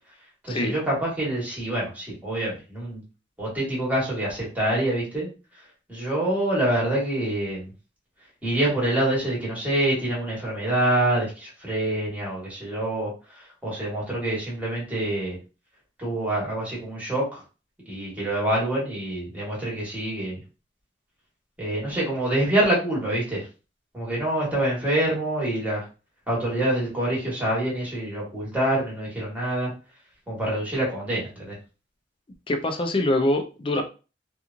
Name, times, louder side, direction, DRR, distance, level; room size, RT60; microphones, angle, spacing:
voice 1, 0.4-3.0 3.4-5.3 5.9-7.7 8.4-15.4 16.0-17.4 17.9-20.4 21.6-23.5 23.9-25.8 26.3-29.7 30.3-31.5, right 1 dB, 10° right, -6 dB, 1.3 m, -26 dB
voice 2, 32.5-33.8, left 1 dB, 30° left, 5 dB, 0.4 m, -24 dB
2.9 x 2.4 x 2.5 m, 0.33 s
head